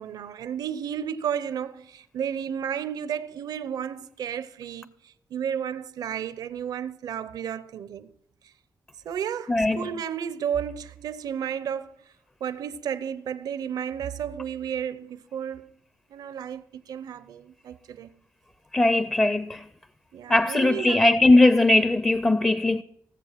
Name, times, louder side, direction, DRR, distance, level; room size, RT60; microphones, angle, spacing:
voice 1, 0.0-8.1 9.0-12.0 12.4-15.7 16.1-18.1 20.1-21.1, right 8 dB, 85° right, 0.7 m, -32 dB
voice 2, 9.5-9.9 18.7-19.6 20.3-22.8, left 2 dB, 15° left, 0.4 m, -19 dB
17.0 x 7.3 x 5.8 m
cardioid pair, 100°, 7 cm